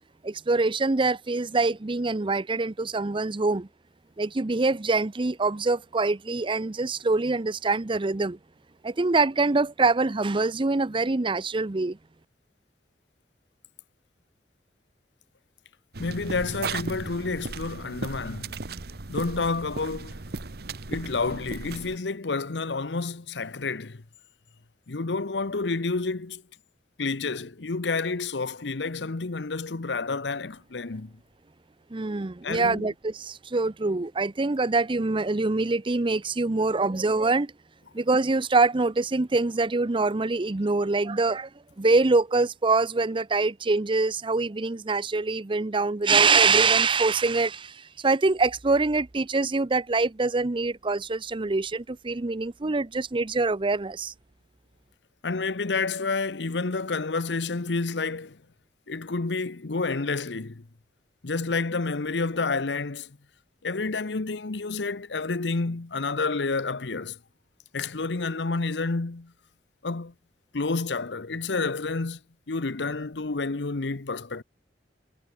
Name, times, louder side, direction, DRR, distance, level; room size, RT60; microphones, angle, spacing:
voice 1, 0.2-3.7 4.2-8.4 8.8-12.0 31.9-37.5 37.9-41.5 41.8-54.1, right 3 dB, 30° right, 0.6 m, -24 dB
sound 1, 15.9-22.0, right 3 dB, 65° right, 1.3 m, -36 dB
voice 2, 16.0-18.6 19.1-20.2 20.9-24.0 24.9-26.4 27.0-31.2 32.4-32.9 55.2-58.4 58.9-60.6 61.2-63.2 63.6-67.2 67.7-69.3 69.8-70.1 70.5-72.2 72.5-74.4, left 3 dB, 90° left, 1.0 m, -29 dB
head